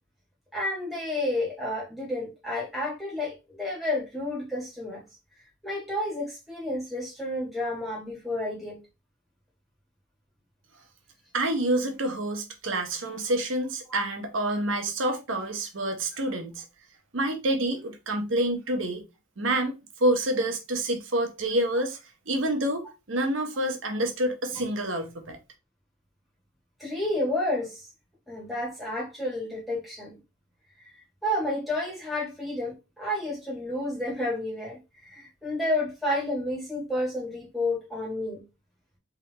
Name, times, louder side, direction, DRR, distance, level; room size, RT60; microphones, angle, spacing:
voice 1, 0.5-5.0 5.6-8.8 26.8-27.8 28.3-30.1 31.2-34.8 35.1-38.4, left 1 dB, ahead, 1.6 m, -30 dB
voice 2, 11.3-16.6 17.1-19.0 19.4-19.7 20.0-22.0 22.3-25.4, right 1 dB, 75° right, 0.9 m, -27 dB
3.6 x 2.9 x 3.3 m
head